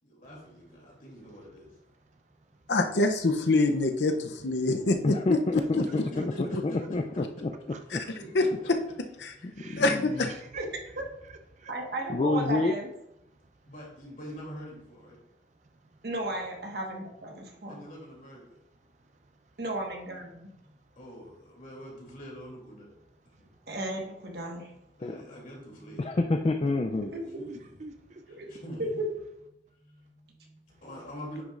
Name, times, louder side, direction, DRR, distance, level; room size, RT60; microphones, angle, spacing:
voice 1, 0.0-1.7 5.9-6.8 8.2-8.7 13.7-15.2 17.7-18.4 20.6-22.9 23.4-23.5 25.0-26.1 27.4-27.7 28.3-29.0 29.6-31.4, equal, 45° left, 2.9 m, -45 dB
voice 2, 2.7-5.4 7.9-8.0 8.3-8.4 9.2-9.3 9.8-10.3, left 2 dB, 75° left, 0.6 m, -25 dB
voice 3, 5.0-7.5 7.9-8.0 9.6-10.3 12.1-12.7 25.0-25.2 26.0-27.1, left 2 dB, 30° left, 0.4 m, -28 dB
voice 4, 9.5-9.8 10.1-10.7 11.2-11.7 16.0-16.1 17.4-17.5 19.2-19.3 23.3-23.4 26.8-28.6, right 3 dB, 40° right, 0.5 m, -47 dB
voice 5, 11.7-12.9 16.0-17.8 19.6-20.5 23.7-24.7 28.3-28.5 28.8-29.1, right 2 dB, 60° right, 1.5 m, -34 dB
9.6 x 6.1 x 2.5 m
head